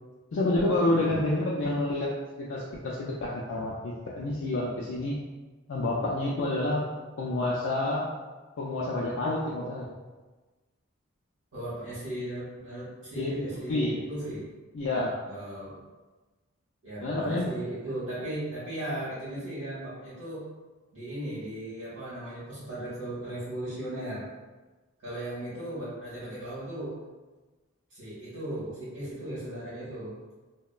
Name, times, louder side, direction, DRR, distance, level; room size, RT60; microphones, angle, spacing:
voice 1, 0.3-5.2 5.7-6.9 7.2-8.1 8.6-9.9 13.2-13.4 13.7-14.0 14.7-15.1 17.0-17.5, left 2 dB, 65° left, -5 dB, 0.3 m, -28 dB
voice 2, 0.8-1.2 11.5-14.5 15.3-15.8 16.8-20.4 20.9-24.3 25.0-27.0 27.9-30.1, right 1 dB, 60° right, -11 dB, 1.3 m, -37 dB
2.8 x 2.1 x 2.4 m, 1.3 s
head